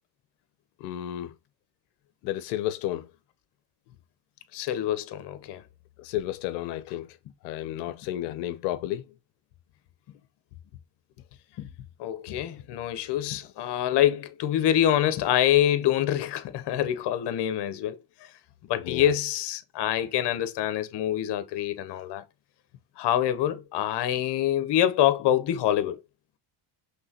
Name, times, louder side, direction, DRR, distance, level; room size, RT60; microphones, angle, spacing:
voice 1, 0.8-1.3 2.2-3.1 6.0-7.1 7.4-9.0 18.7-19.1, left 13 dB, 90° left, 0.6 m, -32 dB
voice 2, 4.5-5.6 11.6-11.7 12.0-18.0 18.7-22.2 23.0-26.0, left 11 dB, 55° left, 0.8 m, -25 dB
5.3 x 3.2 x 2.9 m
supercardioid pair, 80°, 50 cm